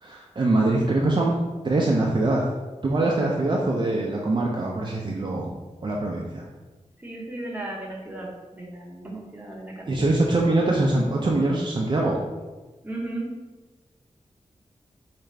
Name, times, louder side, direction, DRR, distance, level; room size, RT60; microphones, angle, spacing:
voice 1, 0.0-1.4 1.6-2.4 2.8-5.5 5.8-6.4 9.9-12.2, right 2 dB, 40° right, -2 dB, 0.4 m, -23 dB
voice 2, 7.0-10.1 12.8-13.3, right 2 dB, 15° right, -3 dB, 0.8 m, -35 dB
4.6 x 2.5 x 3.2 m, 1.2 s
wide cardioid pair, 110°, 12 cm